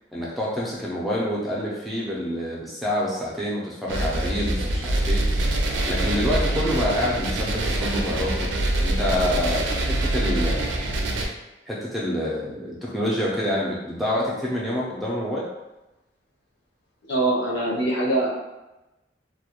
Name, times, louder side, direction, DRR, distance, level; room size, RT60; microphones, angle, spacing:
voice 1, 0.1-5.5 5.8-8.5 8.8-10.9 11.7-15.5, left 1 dB, ahead, -6 dB, 0.3 m, -27 dB
sound 1, 3.9-11.3, right 1 dB, 85° right, 0.4 m, -24 dB
voice 2, 17.1-18.3, right 2 dB, 70° left, -4 dB, 0.6 m, -23 dB
2.2 x 2.0 x 2.9 m, 1.0 s
head